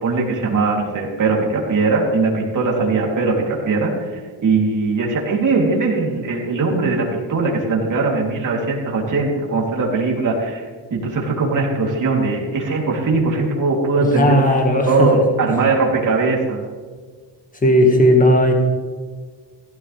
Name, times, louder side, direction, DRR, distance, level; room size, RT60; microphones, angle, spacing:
voice 1, 0.0-3.9 4.4-10.6 10.9-14.4 14.9-16.6, right 3 dB, 40° right, -2 dB, 3.6 m, -20 dB
voice 2, 14.0-15.1 15.5-15.6 17.6-18.5, equal, 20° left, 2 dB, 2.0 m, -15 dB
16.5 x 13.0 x 3.6 m, 1.5 s
cardioid pair, 140°, 44 cm